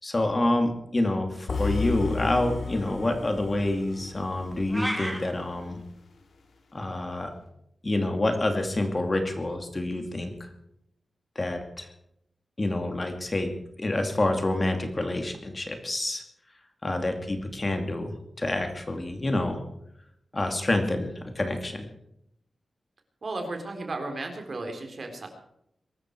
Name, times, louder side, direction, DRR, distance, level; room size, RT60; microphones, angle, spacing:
voice 1, 0.0-5.8 6.7-7.3 7.8-10.3 11.4-11.9 12.6-13.5 13.8-16.2 16.8-19.6 20.3-21.9, left 1 dB, 30° left, 5 dB, 2.5 m, -27 dB
sound 1, 1.5-5.6, left 4 dB, 75° left, 3.0 m, -33 dB
sound 2, 4.7-5.2, equal, 5° right, 3.4 m, -30 dB
voice 2, 23.2-25.3, right 2 dB, 50° right, 4 dB, 3.9 m, -35 dB
23.0 x 13.5 x 4.7 m, 0.76 s
wide cardioid pair, 105°, 0 cm